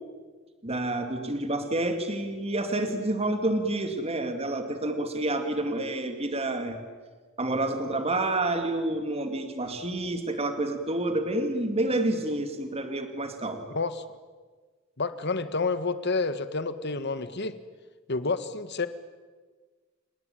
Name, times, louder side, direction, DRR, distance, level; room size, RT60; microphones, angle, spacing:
voice 1, 0.6-6.8 7.4-13.7, right 2 dB, 30° right, 7 dB, 2.4 m, -29 dB
voice 2, 13.7-14.0 15.0-17.6 18.1-18.9, left 3 dB, 60° left, 12 dB, 1.6 m, -29 dB
28.5 x 18.5 x 9.1 m, 1.4 s
head